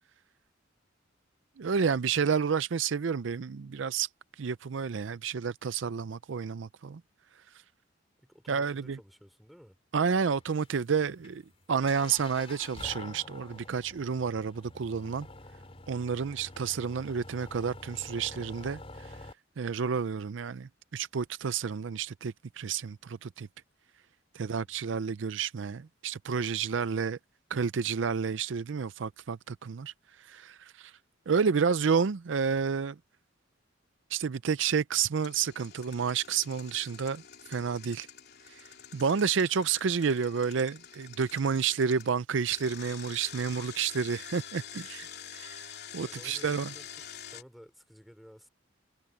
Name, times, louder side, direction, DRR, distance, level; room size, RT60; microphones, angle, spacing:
voice 1, 1.6-4.1 4.4-7.0 8.5-9.0 9.9-11.4 11.7-15.3 15.9-19.2 19.6-23.5 24.3-27.2 27.5-29.9 30.2-30.9 31.3-33.0 34.1-37.2 37.5-38.1 38.5-45.7 45.9-46.7, right 6 dB, 70° right, 0.5 m, -30 dB
voice 2, 8.2-9.8 24.4-24.8 46.0-48.5, equal, ahead, 4.4 m, -54 dB
sound 1, 10.2-19.3, left 2 dB, 30° left, 3.4 m, -47 dB
Engine, 35.2-42.1 42.5-47.4, left 9 dB, 55° left, 3.3 m, -47 dB
head